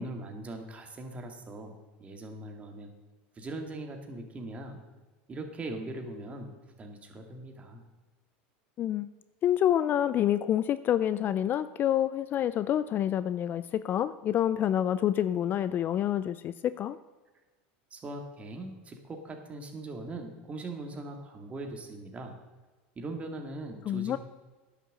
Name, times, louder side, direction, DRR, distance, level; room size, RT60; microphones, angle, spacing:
voice 1, 0.0-2.9 3.3-4.8 5.3-7.8 17.9-22.3 23.0-24.2, right 2 dB, 25° right, 3 dB, 2.1 m, -40 dB
voice 2, 8.8-9.1 9.4-17.0 23.9-24.2, left 11 dB, 35° left, 15 dB, 0.4 m, -27 dB
10.0 x 6.7 x 7.5 m, 1.2 s
supercardioid pair, 115°, 6 cm